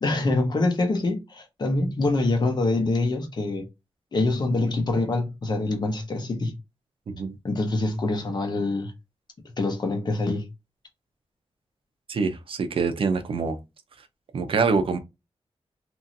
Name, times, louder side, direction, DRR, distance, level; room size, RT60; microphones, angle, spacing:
voice 1, 0.0-3.7 4.1-6.6 7.4-8.9 9.6-10.5, left 2 dB, 40° left, 0.8 m, -25 dB
voice 2, 7.1-7.4 12.1-13.6 14.3-15.0, right 4 dB, 60° right, 0.5 m, -25 dB
3.0 x 2.6 x 2.6 m
wide cardioid pair, 175°, 11 cm